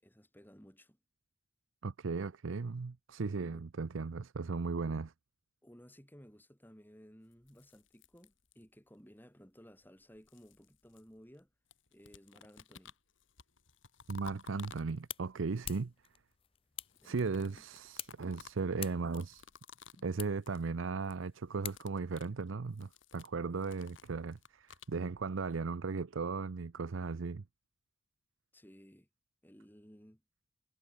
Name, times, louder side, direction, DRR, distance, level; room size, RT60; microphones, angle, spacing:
voice 1, 0.0-1.0 3.5-3.7 5.6-11.5 11.9-12.9 17.0-17.6 28.5-29.1 29.4-30.2, equal, 10° left, 7.9 m, -58 dB
voice 2, 1.8-5.1 14.1-15.9 17.0-19.5 20.0-27.4, right 4 dB, 90° right, 0.6 m, -37 dB
sound 1, 7.3-8.9 9.8-11.4 11.7-15.3 16.7-20.1 20.4-20.7 21.0-21.3 21.6-25.0, left 5 dB, 80° left, 2.7 m, -56 dB
sound 2, 14.4-22.3, left 10 dB, 30° left, 0.5 m, -49 dB
head